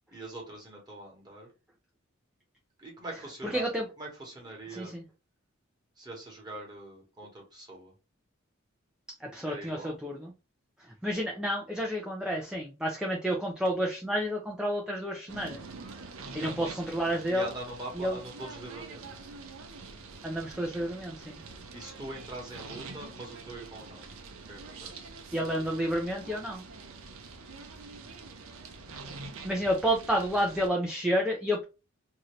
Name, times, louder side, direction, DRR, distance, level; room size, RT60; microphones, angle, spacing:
voice 1, 0.0-1.5 2.8-3.7 4.0-4.9 6.0-7.9 9.5-10.0 16.3-16.8 17.3-19.2 21.7-24.1 24.5-25.2, right 2 dB, 20° right, -2 dB, 1.1 m, -43 dB
voice 2, 3.4-3.9 4.7-5.0 9.2-10.3 10.8-15.6 16.3-17.5 18.0-18.2 20.2-21.4 25.3-26.6 29.4-31.6, equal, 5° right, -1 dB, 0.4 m, -30 dB
sound 1, 15.3-30.7, right 4 dB, 90° right, 0.6 m, -45 dB
2.7 x 2.5 x 3.1 m, 0.30 s
head